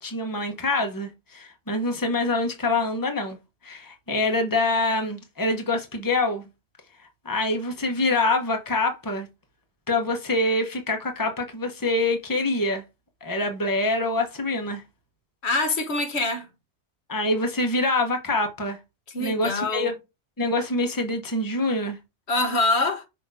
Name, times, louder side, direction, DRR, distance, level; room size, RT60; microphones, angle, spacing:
voice 1, 0.0-3.4 3.6-6.4 7.2-9.3 9.9-12.8 13.2-14.8 17.1-18.8 19.2-19.9 20.4-22.0, left 2 dB, 20° left, 1.1 m, -25 dB
voice 2, 15.4-16.5 19.1-19.9 22.3-23.1, left 2 dB, 70° left, 1.5 m, -25 dB
6.4 x 3.0 x 4.9 m
omnidirectional pair, 1.1 m